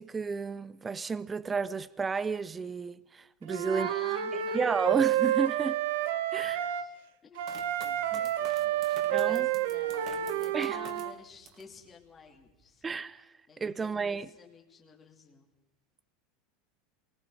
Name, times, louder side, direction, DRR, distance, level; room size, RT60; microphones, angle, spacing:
voice 1, 0.0-3.9 4.3-5.8 6.3-6.7 8.1-8.2 9.1-9.5 10.5-10.8 12.8-13.2 13.6-14.3, right 4 dB, 15° right, 0.7 m, -32 dB
Wind instrument woodwind instrument, 3.5-6.9 7.4-11.1, right 12 dB, 80° right, 1.2 m, -29 dB
voice 2, 3.7-4.8 6.4-6.9 7.2-13.0 13.5-15.5, left 4 dB, 20° left, 2.7 m, -51 dB
sound 1, 7.4-11.7 12.2-12.8, right 7 dB, 45° right, 2.4 m, -50 dB
28.0 x 20.0 x 4.9 m
supercardioid pair, 135°, 0 cm